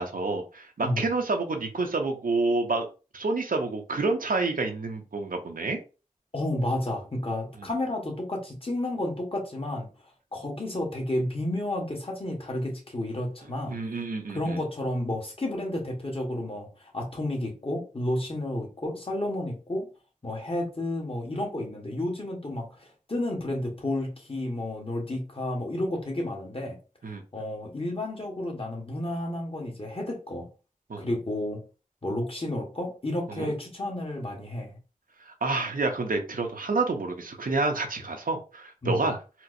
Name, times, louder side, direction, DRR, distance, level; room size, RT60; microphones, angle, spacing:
voice 1, 0.0-2.9 3.1-5.8 7.6-7.7 13.7-14.6 27.0-27.2 30.9-31.1 33.3-33.5 35.3-39.2, right 3 dB, 75° right, 0.7 m, -28 dB
voice 2, 6.3-9.9 10.3-13.8 14.3-19.9 20.2-26.8 27.3-30.5 31.0-31.6 32.0-34.8 38.8-39.0, left 1 dB, 40° left, 1.1 m, -31 dB
4.3 x 2.0 x 2.5 m
wide cardioid pair, 55°, 14 cm